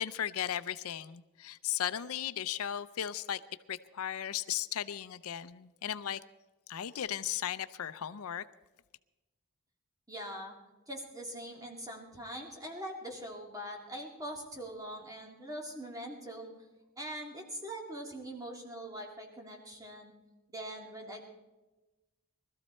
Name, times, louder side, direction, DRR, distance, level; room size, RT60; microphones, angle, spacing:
voice 1, 0.0-3.4 3.7-6.2 6.7-8.4, left 10 dB, 75° left, 0.5 m, -36 dB
voice 2, 10.1-10.5 10.9-16.6 17.0-20.1 20.5-21.3, right 1 dB, 15° right, 2.2 m, -42 dB
20.5 x 13.5 x 4.3 m
head